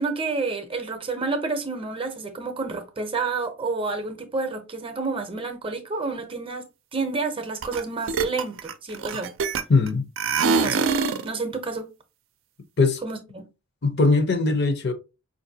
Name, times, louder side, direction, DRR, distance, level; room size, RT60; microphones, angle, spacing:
voice 1, 0.0-9.3 10.4-10.8 11.2-11.9 13.0-13.5, right 3 dB, 25° right, 0.6 m, -29 dB
sound 1, 7.6-7.8 8.1-9.9 10.2-11.3, right 5 dB, 80° right, 0.5 m, -24 dB
voice 2, 9.7-10.1 12.8-13.0 13.8-14.9, left 3 dB, 55° left, 0.6 m, -20 dB
5.2 x 2.5 x 2.7 m
head